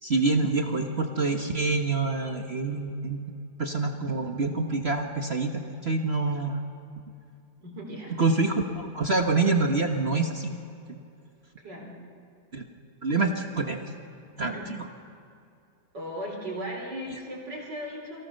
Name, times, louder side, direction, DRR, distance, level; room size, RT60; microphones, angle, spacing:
voice 1, 0.0-3.2 3.6-6.7 8.2-10.5 10.9-11.0 12.5-12.6 13.0-13.9 14.4-14.8, right 3 dB, 35° right, 3 dB, 1.5 m, -26 dB
voice 2, 7.6-8.1 11.6-12.0 14.5-14.8 15.9-18.2, equal, 55° right, -1 dB, 4.6 m, -37 dB
29.0 x 24.0 x 6.6 m, 2.6 s
omnidirectional pair, 2.2 m